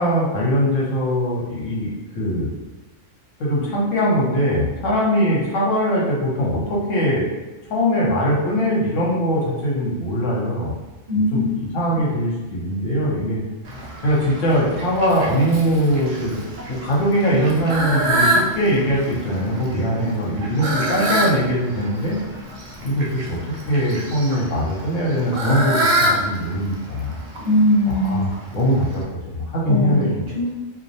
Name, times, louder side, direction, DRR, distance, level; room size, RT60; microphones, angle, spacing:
voice 1, 0.0-2.5 3.4-7.3 7.7-10.7 11.1-13.4 14.0-16.4 16.7-22.2 22.8-23.4 23.7-27.1 28.0-30.2, equal, 75° left, -4 dB, 1.1 m, -21 dB
voice 2, 11.1-11.6 27.4-28.2 29.7-30.5, left 1 dB, 50° right, -7 dB, 0.9 m, -20 dB
Fowl, 13.6-29.0, right 1 dB, 85° right, 0.4 m, -27 dB
2.5 x 2.0 x 2.7 m, 1.2 s
omnidirectional pair, 1.4 m